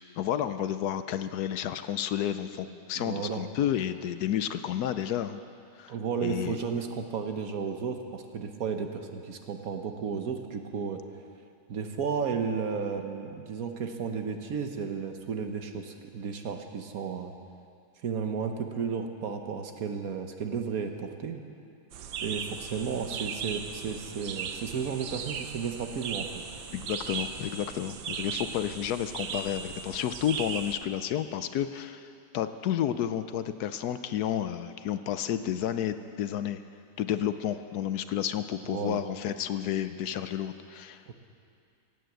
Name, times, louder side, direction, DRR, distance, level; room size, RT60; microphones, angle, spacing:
voice 1, 0.2-5.4 5.8-5.9 6.2-6.6 26.7-36.6 37.0-41.1, left 10 dB, 70° left, 11 dB, 1.1 m, -31 dB
voice 2, 3.0-3.4 5.9-11.0 11.7-17.3 18.0-21.4 22.2-26.3 38.7-39.0 41.1-41.2, right 6 dB, 60° right, 5 dB, 1.3 m, -33 dB
sound 1, 21.9-30.7, right 6 dB, 80° right, 1.5 m, -37 dB
17.0 x 8.8 x 7.8 m, 2.5 s
omnidirectional pair, 1.8 m